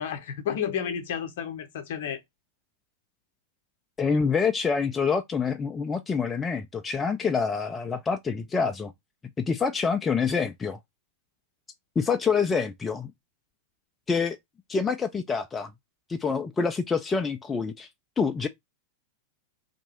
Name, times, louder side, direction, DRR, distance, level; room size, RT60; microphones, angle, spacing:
voice 1, 0.0-2.2, left 8 dB, 55° left, 0.8 m, -31 dB
voice 2, 4.0-8.9 9.4-10.8 12.0-13.1 14.1-14.4 14.7-15.7 16.1-17.9 18.2-18.5, left 5 dB, 15° left, 0.4 m, -26 dB
2.9 x 2.6 x 4.2 m
figure-of-eight pair, 90°, 0 cm